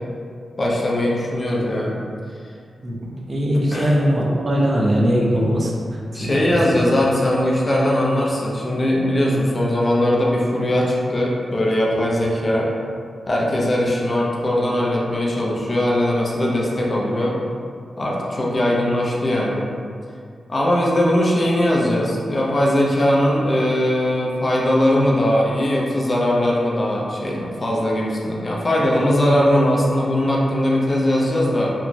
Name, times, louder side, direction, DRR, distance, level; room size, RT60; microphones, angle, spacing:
voice 1, 0.6-2.0 3.5-4.0 6.1-12.7 13.3-17.4 18.0-19.7 20.5-31.7, left 1 dB, 30° left, -4 dB, 0.4 m, -20 dB
voice 2, 2.8-5.7 6.2-6.4 6.7-6.8, equal, 35° right, -3 dB, 0.4 m, -20 dB
2.9 x 2.2 x 2.5 m, 2.2 s
wide cardioid pair, 130°, 0 cm